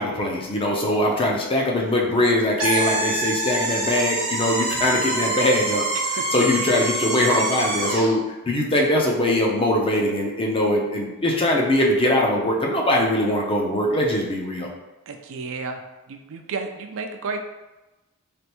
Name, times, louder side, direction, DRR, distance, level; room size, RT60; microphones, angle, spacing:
voice 1, 0.0-5.8 6.3-14.7, left 1 dB, 25° left, -1 dB, 0.5 m, -21 dB
sound 1, 2.6-8.1, right 2 dB, 80° right, 1.1 m, -26 dB
voice 2, 15.1-15.8 16.1-17.4, right 4 dB, 60° right, 5 dB, 0.4 m, -31 dB
3.3 x 2.5 x 2.9 m, 1.1 s
head